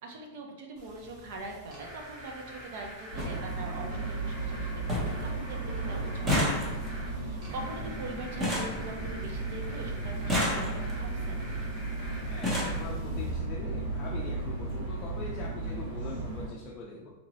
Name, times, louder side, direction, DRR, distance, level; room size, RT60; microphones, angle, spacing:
voice 1, 0.0-11.4, right 2 dB, 55° right, 2 dB, 0.8 m, -43 dB
sound 1, 0.7-13.3, equal, 35° right, 1.2 m, -47 dB
sound 2, 1.0-1.2 2.5-2.6 2.8-2.9 3.2-3.4 3.8-4.3 4.6-4.7 4.9-5.3 5.5-9.5 10.1-11.1 11.9-12.0 12.3-12.8 13.8-13.9 14.2-14.4 14.7-14.8, left 1 dB, 15° right, 0.8 m, -32 dB
sound 3, 3.1-16.5, right 3 dB, 85° right, 1.3 m, -35 dB
voice 2, 12.2-17.1, left 3 dB, 25° left, -3 dB, 0.5 m, -42 dB
4.1 x 2.9 x 2.7 m, 1.0 s
supercardioid pair, 160°, 0 cm